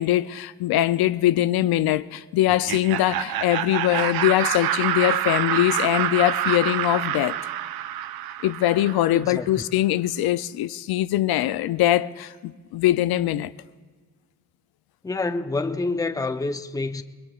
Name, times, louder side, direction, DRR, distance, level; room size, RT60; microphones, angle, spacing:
voice 1, 0.0-7.4 8.4-13.5, left 14 dB, 80° left, 0.5 m, -22 dB
Laughter, 2.5-9.3, right 11 dB, 75° right, 0.6 m, -27 dB
voice 2, 9.1-9.6 15.0-17.0, left 3 dB, 10° left, 0.5 m, -27 dB
28.0 x 21.5 x 2.4 m
cardioid pair, 110°, 36 cm